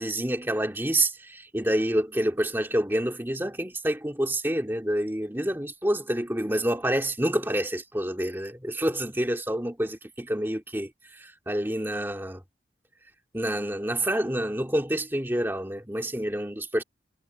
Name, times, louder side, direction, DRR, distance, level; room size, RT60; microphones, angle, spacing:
voice 1, 0.0-12.4 13.3-16.8, right 1 dB, 10° right, 2.4 m, -28 dB
head